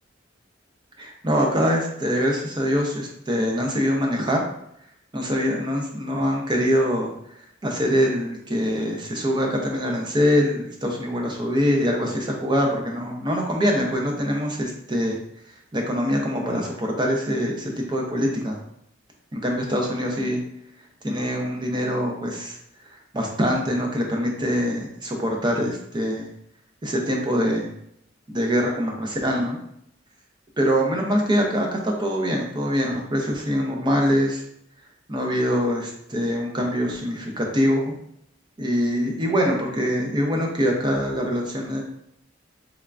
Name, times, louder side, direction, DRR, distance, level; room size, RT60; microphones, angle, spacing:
voice 1, 1.0-4.4 5.1-7.1 7.6-15.2 15.7-18.6 19.3-20.4 21.0-22.6 23.1-26.3 26.8-27.7 28.3-29.6 30.6-34.4 35.1-37.9 38.6-41.8, equal, 25° right, 0 dB, 0.6 m, -24 dB
3.5 x 3.3 x 2.4 m, 0.73 s
head